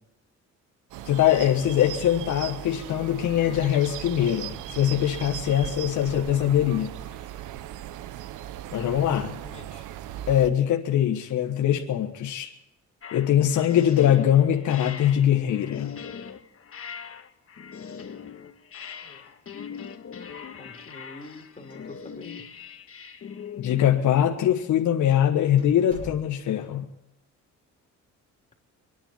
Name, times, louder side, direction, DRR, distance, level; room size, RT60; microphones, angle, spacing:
sound 1, 0.9-10.5, right 12 dB, 85° right, 0.7 m, -38 dB
voice 1, 1.0-6.9 8.7-9.4 10.3-12.5 13.1-16.0 23.6-26.9, left 10 dB, 80° left, 3 dB, 1.4 m, -22 dB
voice 2, 9.1-9.9 19.0-19.3 20.6-22.4, left 3 dB, 20° left, 0 dB, 3.7 m, -46 dB
sound 2, 13.0-24.1, left 6 dB, 45° left, 1.7 m, -41 dB
sound 3, 21.5-22.3 22.6-22.7 23.4-23.5 24.3-24.5 24.9-25.0 25.6-26.7, right 1 dB, 25° right, 6.1 m, -45 dB
26.5 x 10.0 x 4.5 m, 0.88 s
cardioid pair, 90°, 30 cm